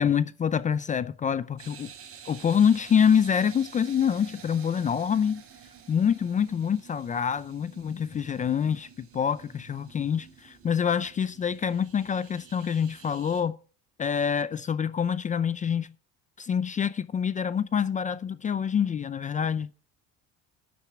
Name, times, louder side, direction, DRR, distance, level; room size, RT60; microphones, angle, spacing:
voice 1, 0.0-1.9 2.3-5.4 5.9-13.6 14.0-15.9 16.4-19.7, left 7 dB, 25° left, 0.5 m, -26 dB
sound 1, 1.6-13.4, right 7 dB, 45° right, 4.6 m, -50 dB
12.5 x 10.0 x 3.5 m
cardioid pair, 135°, 32 cm